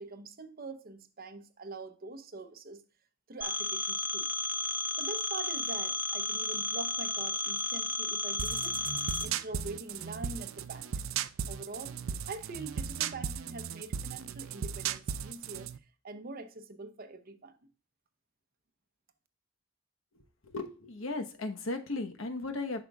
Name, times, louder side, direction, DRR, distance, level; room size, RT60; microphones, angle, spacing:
voice 1, 0.0-2.8 3.3-4.3 5.0-8.7 9.2-10.9 11.5-15.7 16.0-17.6, right 3 dB, 45° right, 0.8 m, -44 dB
Telephone, 3.4-9.2, left 2 dB, 10° right, 0.5 m, -33 dB
sound 1, 8.4-15.8, right 8 dB, 90° right, 0.4 m, -36 dB
voice 2, 20.1-22.8, left 2 dB, 85° left, 1.1 m, -36 dB
8.2 x 5.9 x 2.3 m
head